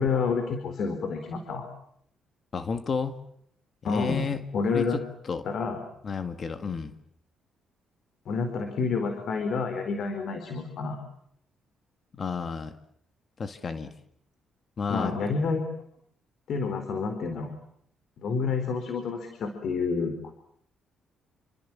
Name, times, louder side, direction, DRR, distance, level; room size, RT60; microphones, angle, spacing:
voice 1, 0.0-1.7 3.8-5.0 5.4-5.8 8.3-11.0 14.9-15.7 16.5-17.5 18.2-20.3, left 4 dB, 65° left, 7 dB, 4.4 m, -29 dB
voice 2, 2.5-3.2 3.8-5.5 6.0-6.9 12.1-12.7 13.4-13.9 14.8-15.1, left 5 dB, 45° left, 8 dB, 2.0 m, -32 dB
28.5 x 25.0 x 7.5 m, 0.68 s
cardioid pair, 90°, 0 cm